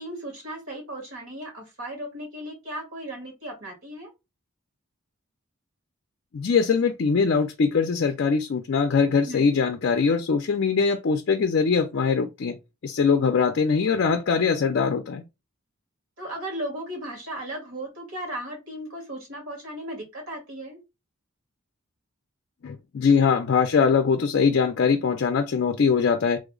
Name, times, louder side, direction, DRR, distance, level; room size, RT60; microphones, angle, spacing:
voice 1, 0.0-4.1 9.2-9.6 16.2-20.8, right 1 dB, 70° right, 1.8 m, -36 dB
voice 2, 6.3-12.6 12.8-15.2 22.6-26.4, left 5 dB, 55° left, 0.4 m, -22 dB
3.2 x 2.0 x 3.7 m
head